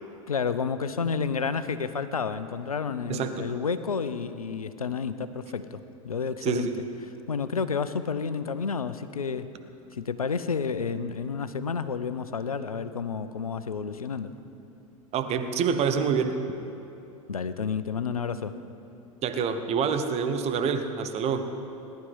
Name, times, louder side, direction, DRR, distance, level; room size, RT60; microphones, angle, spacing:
voice 1, 0.3-6.7 7.3-9.5 9.9-14.3 17.3-18.6, left 5 dB, 85° left, 12 dB, 0.7 m, -30 dB
voice 2, 3.1-3.5 6.4-6.7 15.1-16.4 19.2-21.5, right 6 dB, 35° right, 8 dB, 1.2 m, -27 dB
18.5 x 11.5 x 5.5 m, 2.8 s
figure-of-eight pair, 85°, 18 cm